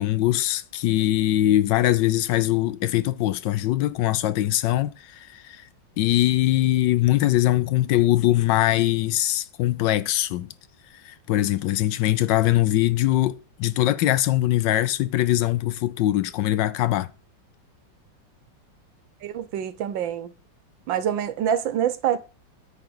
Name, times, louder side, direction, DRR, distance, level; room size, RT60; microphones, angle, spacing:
voice 1, 0.0-5.7 6.0-10.5 11.0-17.1, left 14 dB, 75° left, 1.2 m, -22 dB
voice 2, 19.2-20.3 20.9-22.2, right 9 dB, 85° right, 1.6 m, -26 dB
9.7 x 4.2 x 7.0 m
omnidirectional pair, 2.0 m